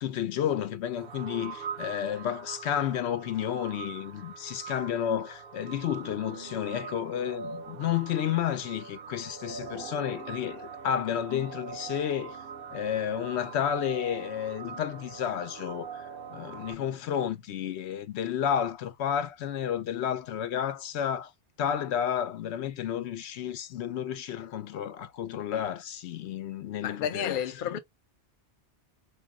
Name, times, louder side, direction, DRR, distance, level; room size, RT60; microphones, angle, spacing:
voice 1, 0.0-12.4 12.7-21.3 21.6-27.4 27.7-27.8, left 9 dB, 85° left, 0.9 m, -31 dB
sound 1, 1.0-16.7, right 6 dB, 65° right, 0.8 m, -43 dB
voice 2, 26.8-27.8, left 9 dB, 60° left, 0.6 m, -31 dB
4.0 x 2.1 x 3.6 m
omnidirectional pair, 1.1 m